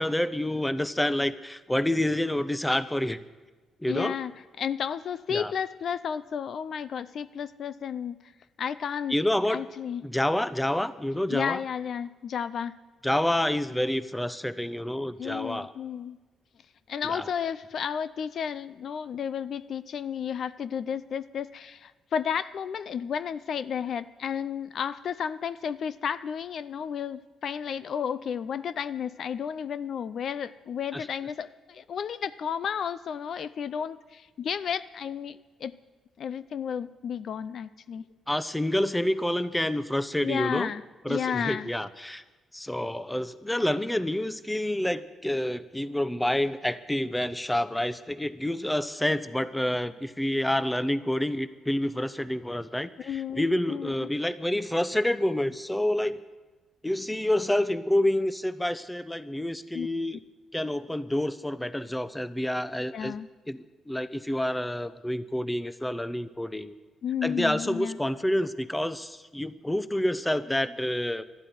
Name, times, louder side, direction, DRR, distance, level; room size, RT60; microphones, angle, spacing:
voice 1, 0.0-3.2 3.8-4.2 5.3-5.5 9.1-9.7 10.0-11.6 13.0-15.7 17.0-17.3 30.9-31.1 38.3-40.7 41.0-42.2 42.5-56.2 56.8-60.2 60.5-63.1 63.5-66.7 67.2-71.2, left 1 dB, 5° left, 14 dB, 0.8 m, -28 dB
voice 2, 3.9-4.3 4.6-8.2 8.6-9.2 9.5-10.0 11.3-12.8 15.2-16.2 16.9-35.7 36.2-38.0 40.2-40.8 41.1-41.7 53.0-54.1 59.7-59.9 62.9-63.3 67.0-68.0, left 7 dB, 60° left, 15 dB, 0.5 m, -32 dB
12.0 x 12.0 x 9.2 m, 1.2 s
cardioid pair, 90°, 0 cm